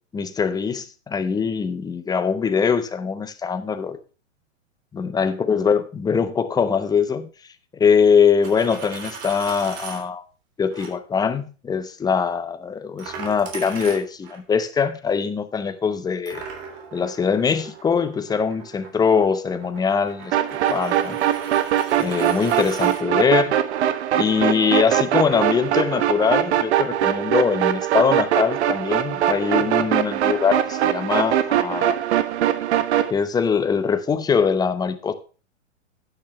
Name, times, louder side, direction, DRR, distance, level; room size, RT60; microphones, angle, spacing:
voice 1, 0.1-4.0 4.9-7.3 7.7-10.2 10.6-16.4 16.9-20.4 20.7-21.2 22.0-23.6 24.1-32.0 33.1-35.1, left 6 dB, 10° left, 10 dB, 0.9 m, -22 dB
Coin (dropping), 8.3-10.0 10.7-10.9 13.0-14.4 16.3-23.0, right 5 dB, 40° right, 3.2 m, -38 dB
sound 1, 20.3-33.1, right 11 dB, 60° right, 1.4 m, -22 dB
12.0 x 9.1 x 3.2 m, 0.36 s
hypercardioid pair, 125°, 38 cm